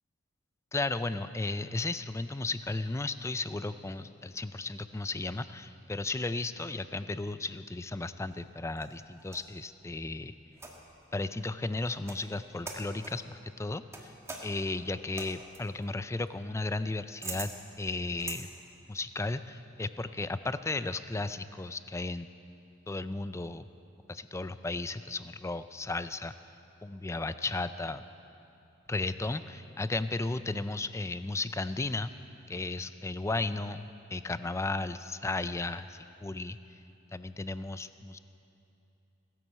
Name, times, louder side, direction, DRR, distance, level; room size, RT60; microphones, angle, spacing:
voice 1, 0.7-10.3 11.1-14.1 14.4-17.5 17.8-18.5 18.9-22.3 22.9-23.7 24.1-26.3 26.8-28.0 28.9-32.1 32.5-36.6 37.1-38.2, left 2 dB, 15° left, 13 dB, 0.4 m, -34 dB
sound 1, 8.2-9.6 10.5-11.0 11.8-12.3 12.6-13.2 13.9-18.4, right 3 dB, 15° right, 1.6 m, -44 dB
17.0 x 11.0 x 7.4 m, 2.9 s
head